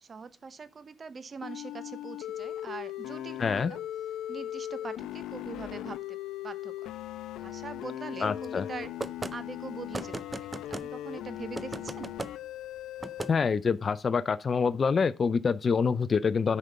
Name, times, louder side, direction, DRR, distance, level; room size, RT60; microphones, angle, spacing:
voice 1, 0.0-3.8 4.3-6.2 6.4-6.9 7.4-8.9 9.3-10.5 10.8-12.1, right 5 dB, 40° right, 0.9 m, -43 dB
sound 1, 1.4-13.3, left 12 dB, 85° left, 0.7 m, -39 dB
voice 2, 3.4-3.7 8.2-8.6 13.3-16.6, left 5 dB, 40° left, 0.4 m, -26 dB
sound 2, 9.0-9.3 9.9-10.9 11.6-12.3 13.0-13.3, right 2 dB, 20° right, 0.4 m, -36 dB
9.8 x 5.2 x 5.6 m
cardioid pair, 90°, 0 cm